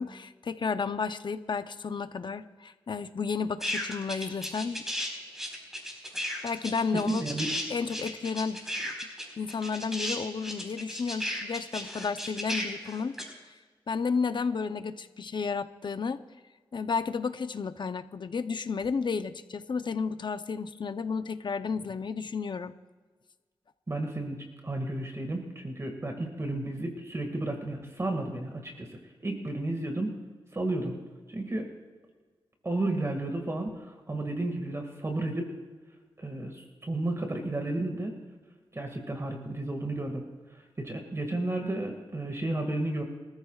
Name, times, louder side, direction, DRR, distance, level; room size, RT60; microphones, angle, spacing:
voice 1, 0.0-4.8 6.4-7.2 7.7-8.6 9.4-13.2 13.9-16.2 16.7-22.7, left 5 dB, 55° left, 10 dB, 0.7 m, -32 dB
sound 1, 3.6-5.1 5.3-13.2, equal, 5° right, 4.7 m, -34 dB
voice 2, 7.1-7.5 23.9-24.4 24.6-28.9 29.2-30.2 30.5-30.9 31.3-31.7 32.6-35.5 36.2-38.1 38.7-40.2 40.8-43.0, right 2 dB, 30° right, 3 dB, 2.0 m, -32 dB
24.5 x 14.0 x 2.4 m, 1.4 s
cardioid pair, 60°, 9 cm